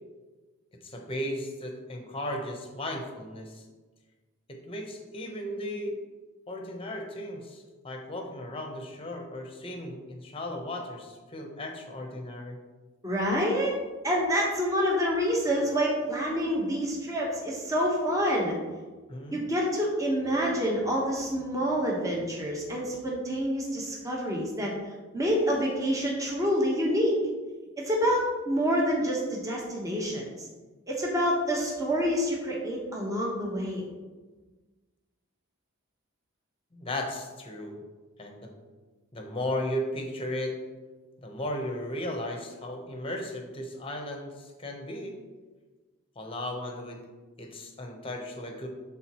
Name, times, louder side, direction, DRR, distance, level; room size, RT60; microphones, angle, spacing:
voice 1, 0.8-3.7 4.5-5.9 6.5-12.6 19.1-19.4 36.7-37.8 38.2-38.5 39.1-40.6 41.2-45.1 46.2-47.0 47.4-48.7, left 1 dB, 25° left, 2 dB, 0.9 m, -36 dB
voice 2, 13.0-13.7 14.0-18.6 19.3-24.7 25.1-27.2 27.8-30.5 30.9-33.8, equal, 15° right, -2 dB, 1.1 m, -27 dB
11.5 x 3.8 x 3.0 m, 1.3 s
head